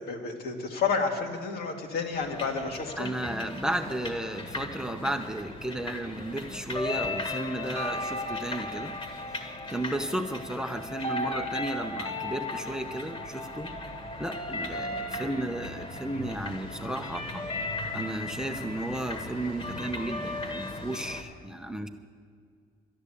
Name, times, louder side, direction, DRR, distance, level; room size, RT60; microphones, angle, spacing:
voice 1, 0.0-3.1, left 5 dB, 65° left, 3 dB, 1.9 m, -30 dB
sound 1, 2.1-21.2, left 2 dB, 30° left, 1.6 m, -36 dB
voice 2, 3.0-9.0 9.3-13.7 14.2-17.5 17.9-21.9, right 1 dB, 5° right, 7 dB, 0.7 m, -34 dB
12.0 x 10.5 x 8.4 m, 2.2 s
cardioid pair, 110°, 17 cm